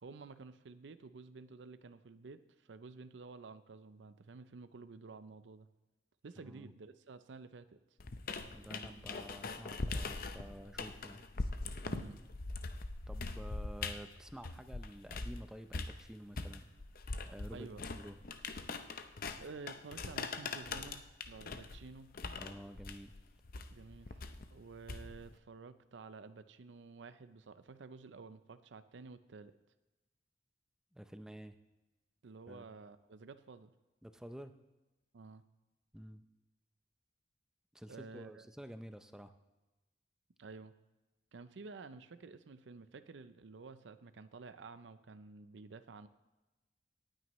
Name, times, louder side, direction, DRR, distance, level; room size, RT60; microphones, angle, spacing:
voice 1, 0.0-5.7 6.2-7.7 11.8-12.2 17.5-17.9 18.7-18.8 19.4-22.1 23.7-29.5 32.2-33.7 35.1-35.4 37.9-38.5 40.4-40.7 41.3-46.1, right 4 dB, 80° right, 12 dB, 0.5 m, -51 dB
sound 1, 8.0-15.4 15.7-25.3, left 3 dB, 50° left, 0.7 m, -42 dB
voice 2, 8.5-11.2 13.1-16.7 17.3-18.2 22.4-23.1 30.9-31.6 32.5-32.7 34.0-34.6 35.9-36.2 37.7-39.3, equal, 5° right, 9 dB, 0.5 m, -50 dB
18.5 x 9.0 x 3.1 m, 1.1 s
head